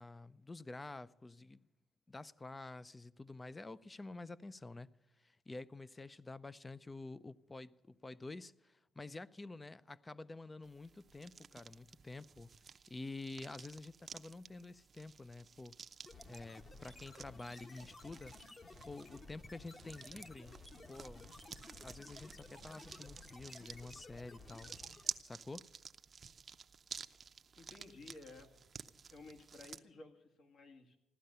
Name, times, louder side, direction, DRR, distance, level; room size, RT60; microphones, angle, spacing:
voice 1, 0.0-1.7 2.1-12.5 12.9-15.8 16.3-18.4 18.8-20.6 20.9-21.3 21.8-24.8 25.2-25.6, left 2 dB, 20° left, 0.5 m, -49 dB
sound 1, 10.6-29.8, right 6 dB, 45° right, 0.6 m, -52 dB
sound 2, 16.1-25.2, left 3 dB, 40° left, 1.6 m, -55 dB
voice 2, 27.6-28.5 29.1-31.0, left 3 dB, 60° left, 2.0 m, -55 dB
16.0 x 12.5 x 6.7 m
cardioid pair, 90°, 0 cm